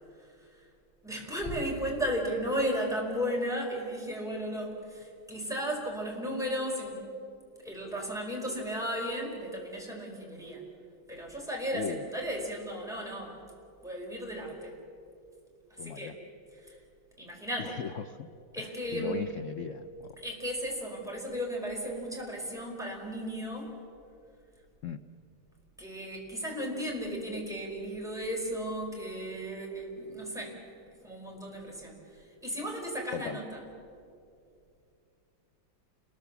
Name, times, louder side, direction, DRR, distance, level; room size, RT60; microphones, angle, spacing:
voice 1, 1.0-7.0 7.6-10.6 11.1-13.4 13.8-14.7 15.7-16.2 16.5-16.8 17.2-17.8 18.5-19.3 20.2-23.8 25.8-30.6 31.0-33.7, equal, ahead, -2 dB, 4.7 m, -35 dB
voice 2, 11.7-12.0 15.8-16.1 17.6-18.3 18.6-20.1 24.8-25.0 33.1-33.4, left 7 dB, 85° left, 10 dB, 0.6 m, -37 dB
29.0 x 21.5 x 7.0 m, 2.5 s
omnidirectional pair, 2.2 m